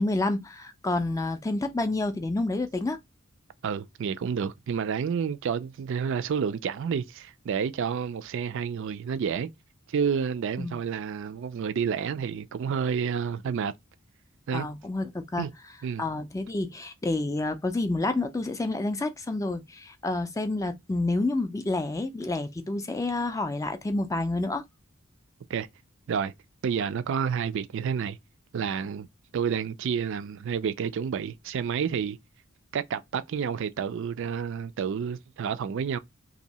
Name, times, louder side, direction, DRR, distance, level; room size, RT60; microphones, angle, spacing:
voice 1, 0.0-3.0 10.6-10.8 14.5-15.5 16.0-24.6, left 2 dB, 15° left, 0.3 m, -29 dB
voice 2, 3.6-9.5 9.9-13.7 14.5-14.7 15.4-15.5 15.8-16.1 25.5-25.7 26.1-26.3 26.6-28.2 28.5-29.1 29.3-32.2 32.7-36.0, right 7 dB, 60° right, 0.3 m, -29 dB
2.7 x 2.6 x 4.1 m
head